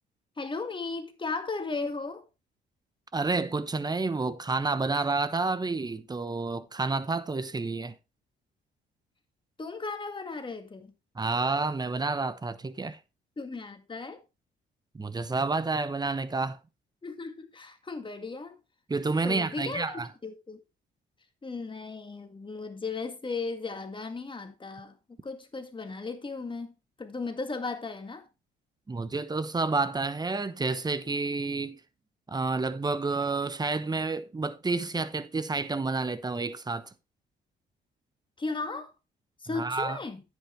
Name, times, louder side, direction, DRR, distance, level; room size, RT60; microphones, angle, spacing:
voice 1, 0.4-2.2 9.6-10.9 13.4-14.2 17.0-18.6 19.2-20.6 21.4-25.0 25.2-28.2 38.4-38.9 39.4-40.2, left 3 dB, 25° left, 1.9 m, -36 dB
voice 2, 3.1-7.9 11.2-13.0 14.9-16.6 18.9-20.1 28.9-31.8 32.3-36.9 39.5-40.0, right 3 dB, 20° right, 0.9 m, -29 dB
10.0 x 8.5 x 3.2 m
cardioid pair, 90°, 20 cm